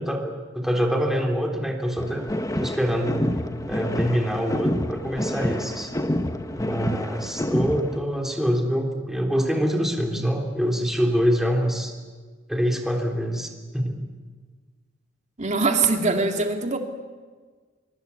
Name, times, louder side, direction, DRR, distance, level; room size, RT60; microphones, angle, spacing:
voice 1, 0.0-2.2 2.6-3.2 3.7-5.9 6.6-11.9 12.5-14.0, equal, ahead, 1 dB, 3.4 m, -25 dB
sound 1, 2.0-8.0, left 1 dB, 15° left, 1.2 m, -28 dB
voice 2, 15.4-16.8, right 3 dB, 35° right, 4 dB, 2.4 m, -22 dB
23.5 x 23.5 x 8.4 m, 1.5 s
head